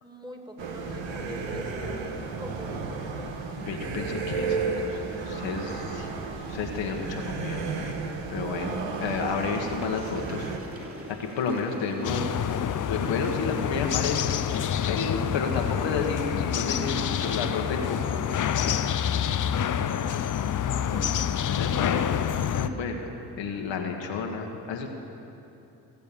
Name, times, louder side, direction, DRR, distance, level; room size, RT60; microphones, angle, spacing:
voice 1, 0.0-2.8 6.4-6.6 20.0-20.2 20.8-21.1, equal, 10° right, 2 dB, 2.5 m, -43 dB
sound 1, 0.6-10.6, right 4 dB, 75° right, 1.4 m, -33 dB
voice 2, 3.6-5.0 5.3-6.1 6.5-7.9 8.3-10.5 11.2-12.5 12.9-14.4 14.8-18.2 20.9-21.1 21.4-24.9, left 5 dB, 75° left, 2 dB, 1.5 m, -31 dB
sound 2, 9.0-17.9, right 1 dB, 30° right, 3.1 m, -44 dB
sound 3, 12.0-22.7, left 9 dB, 45° left, 0.7 m, -27 dB
17.5 x 8.1 x 7.0 m, 2.9 s
supercardioid pair, 50°, 44 cm